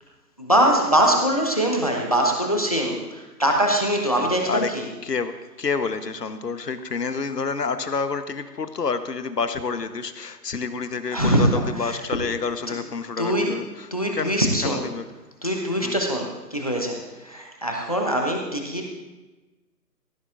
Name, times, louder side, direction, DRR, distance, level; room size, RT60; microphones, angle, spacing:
voice 1, 0.4-4.9 11.1-12.0 12.7-12.8 13.2-13.5 13.9-14.8 15.4-18.9, right 1 dB, 20° left, 1 dB, 0.9 m, -23 dB
voice 2, 4.2-4.7 5.0-5.3 5.6-14.3 14.6-15.0 15.8-16.0, left 5 dB, 70° left, 10 dB, 1.1 m, -28 dB
16.5 x 16.0 x 2.5 m, 1.2 s
figure-of-eight pair, 175°, 50 cm